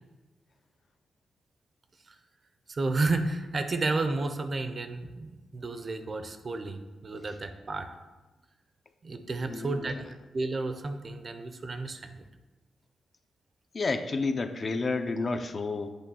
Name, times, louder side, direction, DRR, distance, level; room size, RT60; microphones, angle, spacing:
voice 1, 2.7-7.9 9.0-12.2, right 3 dB, 35° right, 8 dB, 0.5 m, -32 dB
voice 2, 9.5-9.9 13.7-15.9, left 3 dB, 35° left, 8 dB, 0.5 m, -30 dB
8.1 x 3.5 x 6.1 m, 1.2 s
wide cardioid pair, 145°, 0 cm